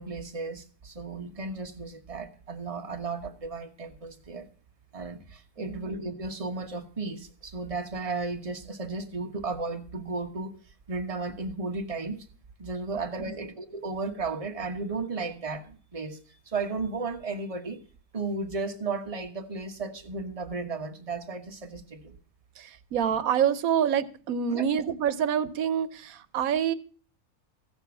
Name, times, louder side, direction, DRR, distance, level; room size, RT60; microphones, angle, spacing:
voice 1, 0.0-4.5 4.9-10.5 10.9-12.2 12.6-16.2 16.5-17.8 18.1-22.2 24.5-24.6, right 3 dB, 25° right, 1.4 m, -34 dB
voice 2, 5.6-5.9 13.2-13.3 22.6-26.7, right 8 dB, 85° right, 1.2 m, -27 dB
15.0 x 7.0 x 7.0 m
omnidirectional pair, 1.4 m